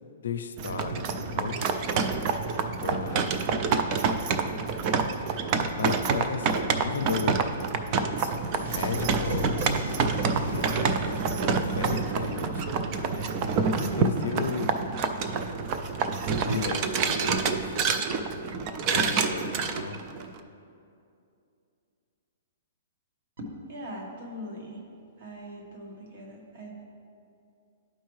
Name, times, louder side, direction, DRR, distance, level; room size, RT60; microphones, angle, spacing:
voice 1, 0.0-1.6 2.8-3.2 5.7-7.4 8.0-8.4 8.7-9.6 10.4-11.0 11.4-13.3 13.8-14.8 16.5-17.8 18.8-20.0, left 6 dB, 85° left, 7 dB, 0.5 m, -35 dB
sound 1, 0.6-20.4, right 5 dB, 25° right, 0.3 m, -27 dB
sound 2, 7.7-13.8, left 1 dB, 80° right, 1.8 m, -38 dB
voice 2, 23.4-24.8 25.2-26.8, equal, 50° right, 0 dB, 1.4 m, -41 dB
11.5 x 4.5 x 3.1 m, 2.5 s
hypercardioid pair, 170°, 0 cm